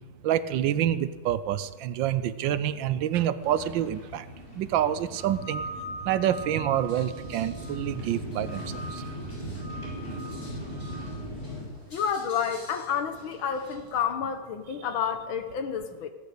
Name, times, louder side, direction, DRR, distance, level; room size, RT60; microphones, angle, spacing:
voice 1, 0.2-4.2 4.6-5.6 6.1-8.6 8.9-9.0, right 11 dB, 75° right, 15 dB, 1.3 m, -27 dB
sound 1, 3.4-11.6, equal, 35° left, 6.6 m, -39 dB
sound 2, 5.2-8.1 8.4-9.2 9.6-11.1, right 1 dB, 30° right, 1.5 m, -41 dB
sound 3, 6.8-14.0, left 1 dB, 60° left, 4.8 m, -53 dB
voice 2, 11.9-16.1, left 7 dB, 80° left, 8 dB, 1.9 m, -30 dB
17.5 x 9.1 x 6.7 m, 1.4 s
omnidirectional pair, 2.2 m